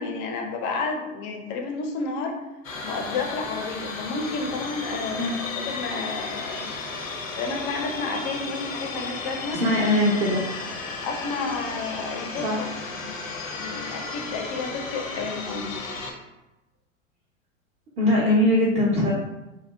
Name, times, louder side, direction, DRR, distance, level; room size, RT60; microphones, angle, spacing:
voice 1, 0.0-2.3 2.8-6.7 7.4-9.6 11.0-12.7 13.0-13.2 13.5-15.7, left 4 dB, 35° left, 2 dB, 0.4 m, -31 dB
sound 1, 2.6-16.1, left 3 dB, 85° left, 0.5 m, -34 dB
voice 2, 9.5-10.4 12.3-12.6 15.2-15.3 18.0-19.1, left 1 dB, 25° right, -4 dB, 0.5 m, -21 dB
2.6 x 2.1 x 2.2 m, 1.0 s
figure-of-eight pair, 95°, 39 cm